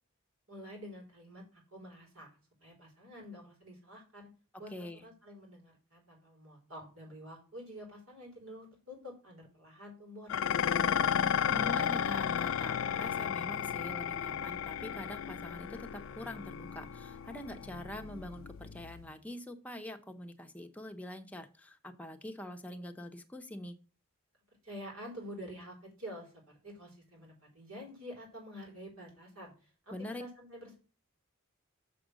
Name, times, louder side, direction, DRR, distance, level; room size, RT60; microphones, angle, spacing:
voice 1, 0.5-2.3 2.6-4.3 4.6-10.4 24.6-26.3 26.6-29.7 30.2-30.8, equal, 75° right, 0 dB, 4.4 m, -48 dB
voice 2, 4.7-5.1 11.5-23.8 29.9-30.2, left 1 dB, 5° left, 5 dB, 0.8 m, -44 dB
Dishes pots and pans, 10.3-19.1, left 8 dB, 65° left, 0.4 m, -33 dB
7.1 x 5.1 x 6.3 m, 0.36 s
head